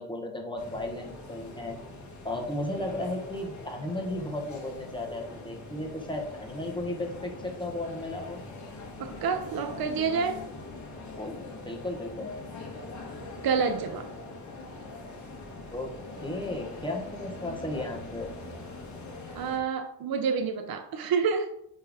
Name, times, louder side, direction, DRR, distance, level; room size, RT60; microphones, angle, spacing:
voice 1, 0.0-1.8 2.2-8.4 11.2-12.3 15.7-15.9 16.2-18.3, left 1 dB, 10° left, 1 dB, 1.2 m, -35 dB
sound 1, 0.6-19.6, left 2 dB, 40° left, 1.5 m, -42 dB
voice 2, 9.0-10.4 13.4-14.1 19.4-21.5, right 5 dB, 55° right, 6 dB, 0.7 m, -28 dB
9.0 x 3.3 x 3.6 m, 0.75 s
cardioid pair, 125°, 44 cm